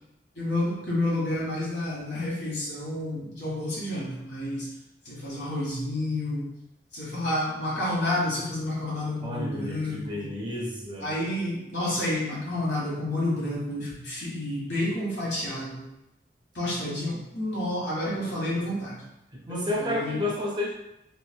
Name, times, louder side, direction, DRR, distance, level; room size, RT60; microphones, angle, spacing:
voice 1, 0.3-4.7 5.0-6.5 6.9-10.3 11.0-15.9 16.5-19.0 19.5-20.2, left 1 dB, 70° left, -6 dB, 1.4 m, -30 dB
voice 2, 9.2-11.1 19.5-20.7, left 1 dB, 25° right, -2 dB, 0.4 m, -31 dB
3.1 x 3.1 x 2.2 m, 0.90 s
head